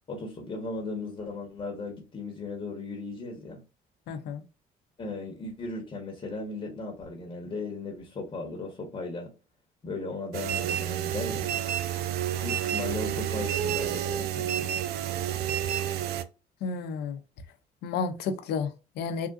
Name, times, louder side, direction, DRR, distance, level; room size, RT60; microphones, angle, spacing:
voice 1, 0.1-3.6 5.0-9.3 9.8-11.5 12.4-14.8, left 3 dB, 30° left, 1.1 m, -37 dB
voice 2, 4.1-4.4 16.6-17.2 17.8-19.3, left 5 dB, 75° left, 0.6 m, -31 dB
sound 1, 10.3-16.2, right 11 dB, 70° right, 0.4 m, -30 dB
3.6 x 2.4 x 2.4 m
cardioid pair, 110°, 17 cm